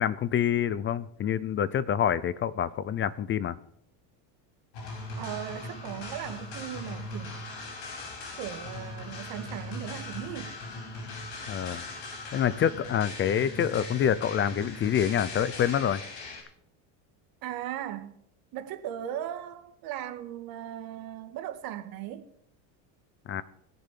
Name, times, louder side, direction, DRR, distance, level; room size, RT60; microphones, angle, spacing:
voice 1, 0.0-3.6 11.5-11.8 12.3-16.0 23.3-23.4, left 9 dB, 30° left, 0.6 m, -27 dB
sound 1, 4.7-16.4, left 2 dB, 65° left, 8.0 m, -39 dB
voice 2, 5.2-7.4 8.3-10.5 17.4-18.2 18.5-22.3, right 11 dB, 60° right, 1.9 m, -38 dB
20.5 x 6.9 x 7.5 m
cardioid pair, 130°, 40 cm